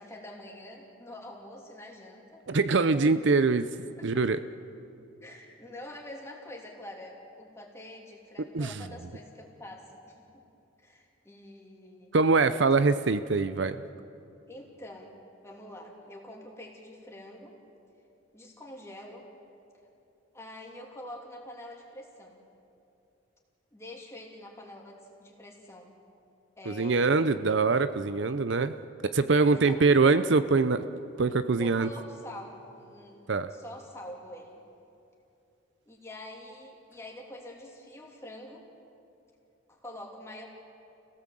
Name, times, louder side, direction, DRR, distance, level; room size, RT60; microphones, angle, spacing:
voice 1, 0.0-2.4 2.9-3.2 3.8-4.3 5.2-10.4 10.8-12.1 14.5-15.1 15.4-17.6 18.3-19.3 20.3-22.4 23.7-26.0 26.6-27.3 29.4-29.8 31.6-34.6 35.9-38.6 39.7-40.5, left 1 dB, 15° left, -1 dB, 2.9 m, -46 dB
voice 2, 2.5-3.7 4.0-4.4 8.5-8.7 12.1-13.8 26.7-28.8 29.0-30.8 31.2-31.9 33.3-33.5, right 4 dB, 60° right, 12 dB, 0.6 m, -23 dB
29.0 x 17.5 x 7.7 m, 2.7 s
head